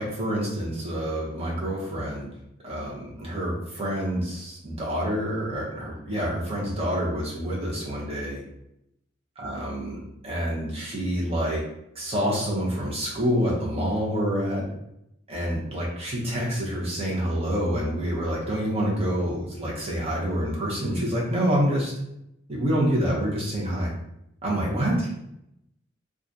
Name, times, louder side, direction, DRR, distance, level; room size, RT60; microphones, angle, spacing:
voice 1, 0.0-2.3 2.6-8.4 9.4-11.6 11.9-14.7 15.3-21.9 22.5-23.9 24.4-25.0, equal, 30° right, -4 dB, 1.0 m, -27 dB
3.0 x 2.4 x 3.9 m, 0.81 s
head